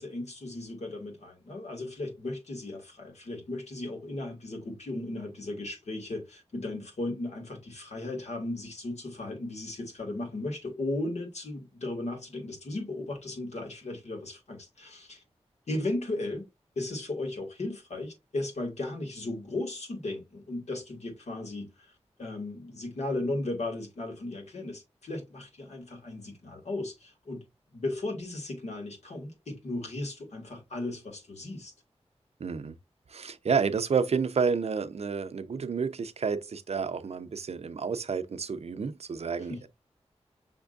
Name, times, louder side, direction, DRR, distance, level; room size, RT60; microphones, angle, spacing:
voice 1, 0.0-15.2 15.7-16.5 16.8-21.9 22.2-27.4 27.7-31.7 39.5-39.7, left 2 dB, 80° left, 2.2 m, -36 dB
voice 2, 32.4-32.7 33.1-39.7, right 5 dB, 65° right, 0.6 m, -30 dB
5.9 x 3.5 x 2.5 m
wide cardioid pair, 90°, 11 cm